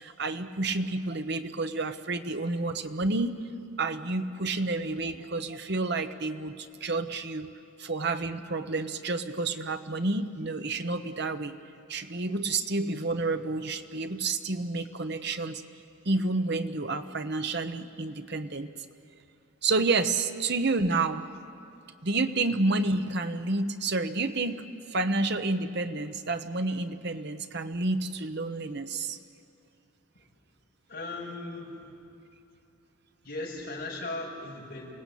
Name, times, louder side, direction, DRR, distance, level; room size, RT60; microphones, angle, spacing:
voice 1, 0.0-3.4 3.8-7.5 7.8-11.5 11.9-15.6 16.0-18.7 19.6-21.3 22.0-24.6 24.9-29.2, right 3 dB, 50° right, 8 dB, 1.0 m, -29 dB
voice 2, 30.9-31.9 33.2-34.9, left 2 dB, 45° left, -6 dB, 6.0 m, -37 dB
28.0 x 18.0 x 8.5 m, 2.6 s
head